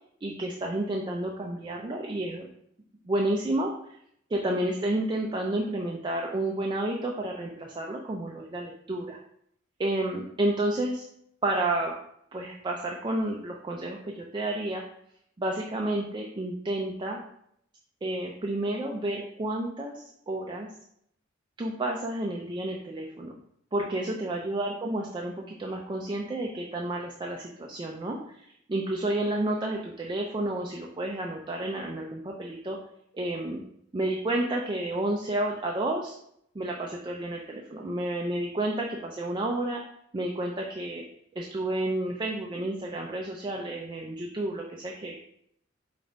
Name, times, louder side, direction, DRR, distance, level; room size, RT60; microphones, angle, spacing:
voice 1, 0.2-2.5 3.0-3.8 4.3-9.2 9.8-11.0 11.4-11.9 12.3-14.8 15.4-17.2 18.0-20.7 21.6-23.4 23.7-32.8 33.1-33.6 33.9-36.2 36.5-39.9 40.1-41.1 41.3-45.2, right 1 dB, 25° right, 0 dB, 0.4 m, -30 dB
5.1 x 2.5 x 3.9 m, 0.71 s
head